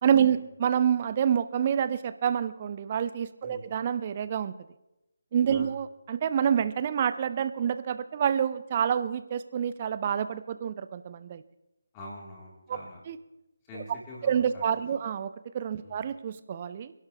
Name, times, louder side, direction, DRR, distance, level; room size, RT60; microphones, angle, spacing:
voice 1, 0.0-4.5 5.3-11.4 13.1-13.2 14.2-16.9, right 8 dB, 30° right, 13 dB, 0.6 m, -27 dB
voice 2, 11.9-13.0 13.7-15.0 15.8-16.0, left 1 dB, 20° left, -4 dB, 3.5 m, -45 dB
27.0 x 11.5 x 3.2 m, 0.94 s
figure-of-eight pair, 150°, 0 cm